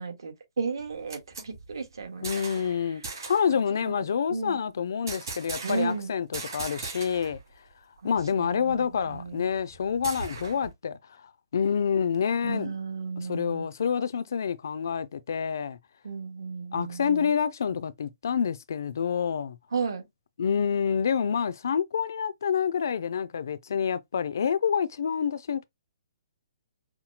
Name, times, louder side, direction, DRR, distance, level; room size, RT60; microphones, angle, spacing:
voice 1, 0.0-3.1 3.5-4.0 4.3-4.6 5.6-6.1 8.0-9.5 12.4-13.7 16.0-17.3 19.7-20.1, right 5 dB, 75° right, 1.6 m, -34 dB
sound 1, 0.8-2.7 3.0-3.5 5.1-6.0 6.3-7.4 7.7-7.8 8.1-10.7, right 3 dB, 60° right, 2.3 m, -39 dB
voice 2, 2.2-7.4 8.0-11.0 11.5-12.7 13.3-15.8 16.7-19.6 20.4-25.7, left 7 dB, 50° left, 0.4 m, -27 dB
5.6 x 2.2 x 2.8 m
hypercardioid pair, 180°, 2 cm